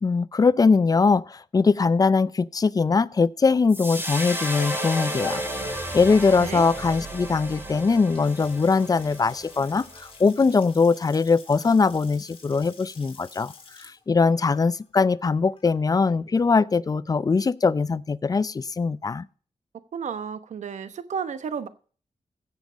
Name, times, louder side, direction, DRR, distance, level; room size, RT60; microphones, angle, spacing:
voice 1, 0.0-5.4 5.7-13.5 13.8-19.3, left 4 dB, 30° left, 0.4 m, -21 dB
sound 1, 3.7-10.1, equal, 15° right, 5.9 m, -33 dB
voice 2, 6.4-6.7 19.9-21.7, right 6 dB, 80° right, 1.0 m, -32 dB
Water tap faucet / Sink (filling or washing) / Splash splatter, 8.0-16.0, left 4 dB, 50° left, 3.4 m, -50 dB
15.5 x 7.3 x 5.0 m
wide cardioid pair, 95°, 12 cm